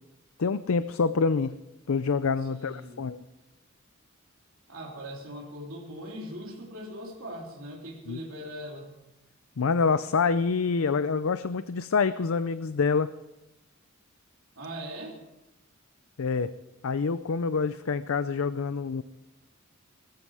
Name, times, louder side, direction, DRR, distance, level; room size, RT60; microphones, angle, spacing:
voice 1, 0.4-1.6 1.9-3.2 8.1-8.2 9.6-13.1 16.2-16.5 16.8-19.0, left 5 dB, 75° left, 13 dB, 0.5 m, -26 dB
voice 2, 2.4-3.1 4.7-8.9 14.6-15.2, equal, 75° right, -1 dB, 3.4 m, -40 dB
19.5 x 14.5 x 4.8 m, 0.98 s
head